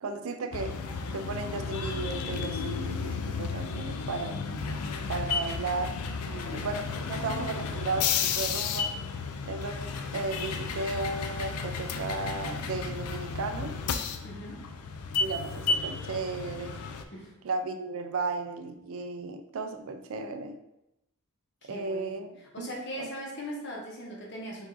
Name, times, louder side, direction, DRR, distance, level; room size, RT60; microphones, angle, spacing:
voice 1, 0.0-0.8 1.1-4.4 5.1-6.0 6.5-8.9 9.5-13.7 15.2-16.8 17.4-20.6 21.6-23.1, right 3 dB, 65° right, 7 dB, 0.4 m, -35 dB
sound 1, 0.5-17.0, left 5 dB, 85° left, 0.4 m, -33 dB
voice 2, 6.2-6.7 14.2-14.6 17.1-17.3 21.6-22.3 22.5-24.7, equal, 50° left, -2 dB, 1.1 m, -40 dB
4.7 x 2.6 x 3.9 m, 0.87 s
head